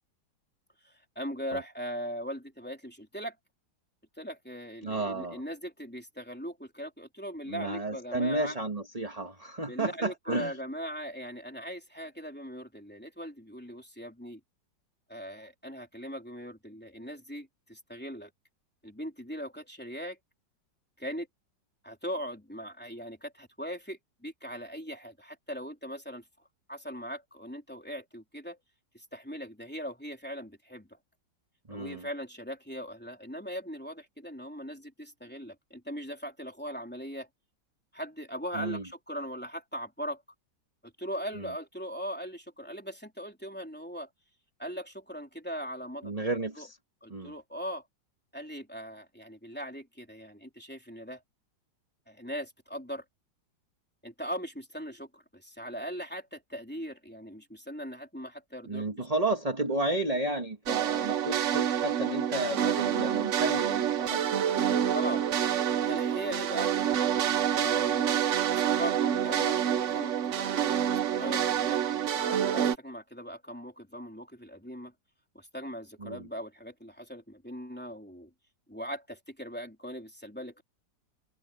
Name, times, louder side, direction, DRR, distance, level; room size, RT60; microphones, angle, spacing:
voice 1, 0.8-3.4 4.2-8.6 9.7-14.4 15.1-18.3 18.8-20.2 21.0-21.3 21.8-26.2 26.7-28.6 28.9-31.0 31.7-37.3 37.9-40.2 40.8-44.1 44.6-46.1 46.6-46.7 47.0-47.9 48.3-51.2 52.1-53.0 54.0-59.1 64.9-65.3 65.9-66.7 67.5-70.8 71.2-74.9 75.3-78.3 78.7-80.6, equal, 5° left, 3.5 m, -40 dB
voice 2, 4.8-5.4 7.5-10.6 31.7-32.1 38.5-38.8 41.4-41.5 46.0-46.8 47.1-47.3 58.7-64.2 76.0-76.3, right 2 dB, 20° right, 1.9 m, -32 dB
sound 1, 60.7-72.8, right 9 dB, 60° right, 0.9 m, -27 dB
omnidirectional pair, 2.0 m